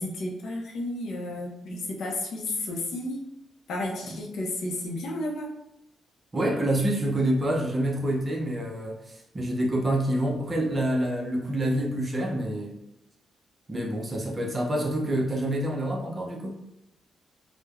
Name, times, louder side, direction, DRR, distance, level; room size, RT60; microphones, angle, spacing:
voice 1, 0.0-3.2 3.7-5.5, left 1 dB, 75° left, -2 dB, 0.5 m, -32 dB
voice 2, 6.3-12.7 13.7-16.6, right 1 dB, 20° right, -1 dB, 0.4 m, -27 dB
3.0 x 2.0 x 2.3 m, 0.83 s
wide cardioid pair, 175°, 0 cm